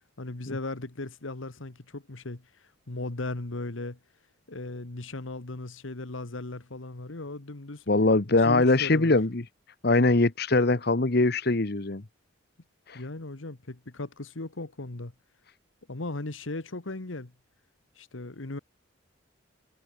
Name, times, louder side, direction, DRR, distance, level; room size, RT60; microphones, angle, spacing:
voice 1, 0.2-4.0 4.5-7.8 8.3-9.2 12.9-15.1 15.9-17.3 17.9-18.6, left 2 dB, 90° left, 1.5 m, -37 dB
voice 2, 7.9-9.4 9.8-12.0 12.9-13.0, left 2 dB, 55° left, 1.2 m, -22 dB
head